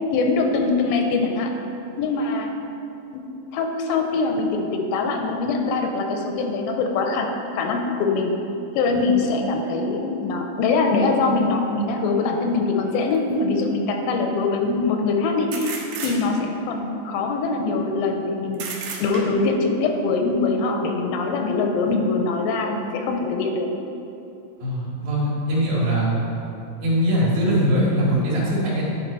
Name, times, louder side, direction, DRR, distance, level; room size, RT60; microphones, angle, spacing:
voice 1, 0.1-1.5 2.0-2.5 3.1-3.3 3.5-8.3 8.8-18.6 19.0-23.7, left 3 dB, 90° left, 3 dB, 2.4 m, -23 dB
sound 1, 13.1-13.2 15.5-16.6 18.5-19.6, right 5 dB, 90° right, 2.7 m, -33 dB
voice 2, 24.6-26.1 26.8-28.8, equal, 60° right, -6 dB, 2.8 m, -21 dB
10.5 x 4.7 x 4.3 m, 2.9 s
omnidirectional pair, 4.1 m